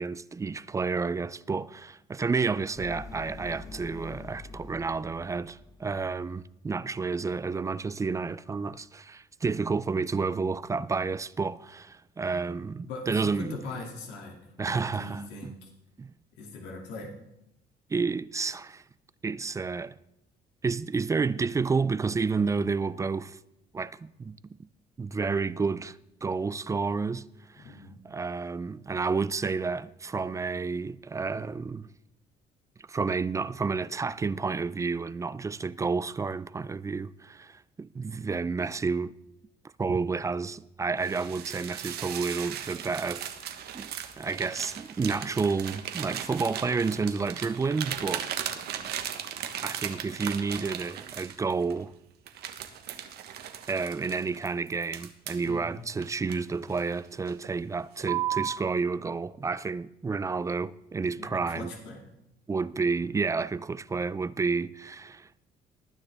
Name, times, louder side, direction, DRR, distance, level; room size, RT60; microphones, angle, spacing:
voice 1, 0.0-13.6 14.6-15.5 16.0-16.1 17.9-18.8 19.2-20.0 20.6-23.4 23.7-24.4 25.0-31.9 32.9-39.1 39.8-43.3 43.7-48.8 49.6-51.9 53.7-61.7 62.5-65.4, right 4 dB, 20° right, 0.4 m, -30 dB
sound 1, 2.8-6.2, left 3 dB, 20° left, 1.1 m, -45 dB
voice 2, 12.8-15.7 16.4-17.1 27.6-28.0 55.4-55.8 61.2-62.0, left 2 dB, 85° left, 2.5 m, -41 dB
sound 2, 41.0-51.8 52.3-55.5 56.0-56.9 57.3-57.6 58.0-58.6, right 10 dB, 70° right, 1.2 m, -37 dB
19.0 x 9.8 x 3.5 m
cardioid pair, 110°, 17 cm